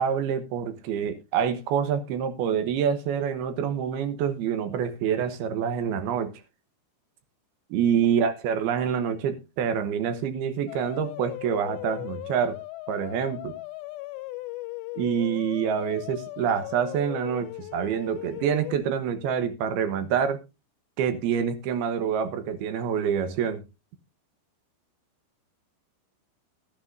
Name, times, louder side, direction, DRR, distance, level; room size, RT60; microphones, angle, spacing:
voice 1, 0.0-6.3 7.7-12.6 12.9-13.5 15.0-20.4 21.0-23.6, right 8 dB, 70° right, 2.8 m, -26 dB
sound 1, 10.7-18.8, left 19 dB, 85° left, 3.0 m, -38 dB
13.5 x 13.5 x 2.6 m
omnidirectional pair, 5.1 m